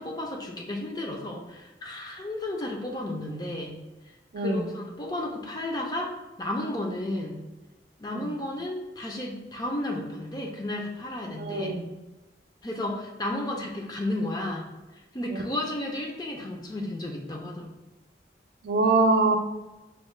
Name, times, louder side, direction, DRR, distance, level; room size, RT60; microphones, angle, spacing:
voice 1, 0.0-3.8 4.4-6.1 6.4-7.4 8.0-11.8 12.6-17.7, left 1 dB, 20° left, 1 dB, 0.5 m, -33 dB
voice 2, 4.3-4.7 8.1-8.4 11.3-11.9 15.3-15.4 18.6-19.4, right 3 dB, 70° right, 5 dB, 0.4 m, -24 dB
5.3 x 2.1 x 3.1 m, 1.1 s
head